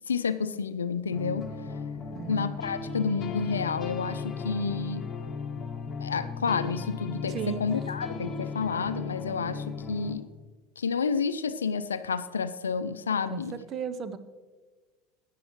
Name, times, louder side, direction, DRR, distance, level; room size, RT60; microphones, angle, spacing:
voice 1, 0.1-1.5 2.3-5.0 6.0-10.3 10.8-13.6, left 5 dB, 85° left, 13 dB, 0.5 m, -30 dB
sound 1, 1.1-10.1, left 5 dB, 30° left, 1.5 m, -36 dB
voice 2, 2.1-2.5 7.3-7.7 13.3-14.2, right 7 dB, 40° right, 11 dB, 0.8 m, -35 dB
16.5 x 11.0 x 3.1 m, 1.3 s
hypercardioid pair, 80°, 0 cm